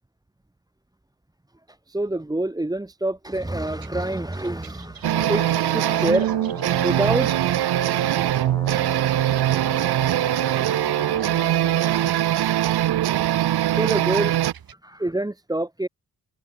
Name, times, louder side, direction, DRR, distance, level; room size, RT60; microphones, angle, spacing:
voice 1, 1.7-6.3 6.8-7.5 8.2-8.3 9.0-10.4 13.7-14.4 14.8-15.9, right 1 dB, 10° right, 2.8 m, -27 dB
sound 1, 3.2-14.7, right 9 dB, 65° right, 6.4 m, -47 dB
Brass instrument, 5.0-12.1, left 2 dB, 10° left, 2.8 m, -37 dB
sound 2, 5.0-14.5, right 13 dB, 90° right, 1.3 m, -22 dB
cardioid pair, 120°, 38 cm